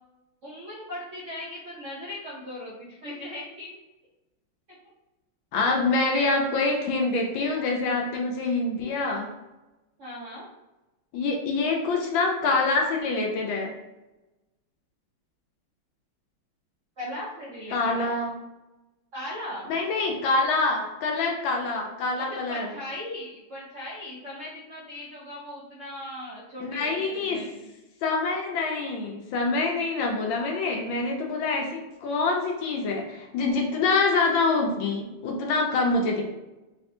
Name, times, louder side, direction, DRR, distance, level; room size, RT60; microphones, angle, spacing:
voice 1, 0.4-3.8 6.0-6.4 10.0-10.5 17.0-18.1 19.1-19.7 22.3-27.7, left 1 dB, 65° right, -7 dB, 0.8 m, -38 dB
voice 2, 5.5-9.3 11.1-13.8 17.7-18.4 19.7-22.7 26.6-27.4 28.0-36.2, left 3 dB, 75° left, 1 dB, 1.4 m, -25 dB
3.4 x 3.3 x 2.7 m, 1.0 s
omnidirectional pair, 2.2 m